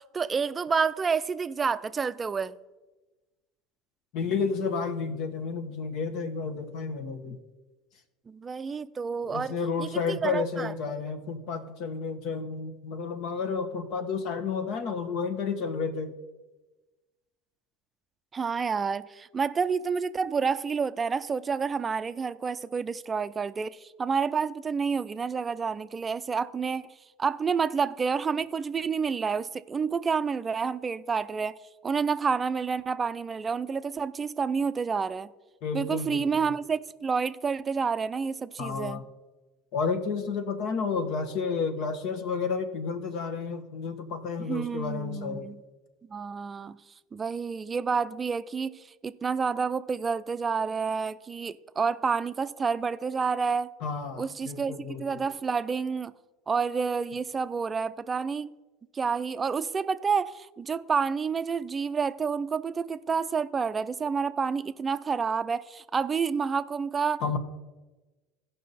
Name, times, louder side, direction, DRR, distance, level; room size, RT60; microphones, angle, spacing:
voice 1, 0.0-2.6 8.3-9.5 9.8-10.7 18.3-26.9 27.2-31.6 31.8-35.3 35.7-39.0 44.5-45.6 46.1-46.8 47.1-53.7 54.2-56.1 56.5-58.5 58.9-67.2, right 5 dB, 25° right, 0.5 m, -29 dB
voice 2, 4.1-7.4 9.2-16.1 35.6-36.5 38.6-39.0 39.7-45.5 53.8-55.2 67.2-67.4, left 5 dB, 60° left, 1.3 m, -31 dB
16.0 x 5.5 x 4.2 m
hypercardioid pair, 80°, 0 cm